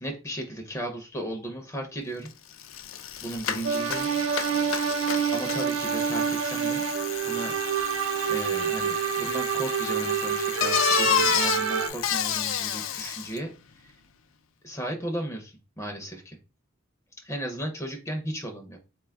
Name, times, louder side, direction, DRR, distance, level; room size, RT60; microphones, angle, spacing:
voice 1, 0.0-2.3 3.2-4.1 5.3-6.8 7.3-7.5 8.3-14.0 14.6-16.4 17.2-18.8, right 1 dB, 15° left, 2 dB, 0.5 m, -35 dB
Bicycle, 2.3-2.4 2.6-13.4, left 8 dB, 70° left, 0.4 m, -30 dB
sound 1, 3.6-11.9, right 8 dB, 80° right, 0.4 m, -27 dB
4.0 x 2.2 x 3.4 m, 0.32 s
head